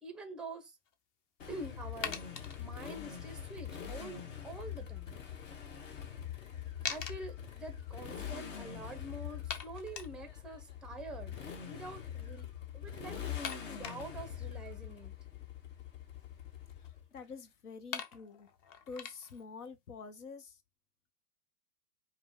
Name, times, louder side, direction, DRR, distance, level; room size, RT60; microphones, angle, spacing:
voice 1, 0.0-0.7 1.5-2.2 2.6-5.2 6.9-11.4 11.6-12.5 12.7-13.2 13.7-15.1, right 2 dB, ahead, 0.4 m, -46 dB
sound 1, 0.9-1.0 2.0-2.6 5.7-5.8 6.0-6.1 6.8-7.2 8.2-8.3 8.5-8.6 9.5-10.1 12.3-12.5 13.4-14.3 15.8-16.9 17.6-17.7 17.9-19.4, left 7 dB, 40° left, 0.8 m, -42 dB
Motorcycle, 1.4-17.2, left 9 dB, 60° left, 1.4 m, -44 dB
voice 2, 17.1-18.5 18.9-20.6, left 4 dB, 85° left, 0.9 m, -47 dB
4.8 x 2.1 x 3.6 m
hypercardioid pair, 120°, 45 cm